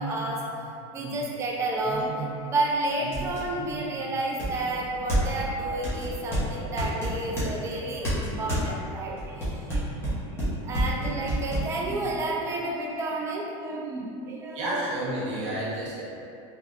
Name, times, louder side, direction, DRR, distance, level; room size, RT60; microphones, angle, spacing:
voice 1, 0.0-14.6 15.4-15.6, right 2 dB, 20° right, -2 dB, 0.4 m, -31 dB
sound 1, 2.0-2.1 2.6-2.7 3.1-3.5 4.4-5.5 5.8-7.5 8.0-8.7 9.2-11.7, right 1 dB, 15° left, 1.0 m, -28 dB
voice 2, 14.5-16.0, right 1 dB, 80° right, -7 dB, 0.8 m, -30 dB
3.5 x 2.4 x 2.5 m, 2.5 s
supercardioid pair, 145°, 16 cm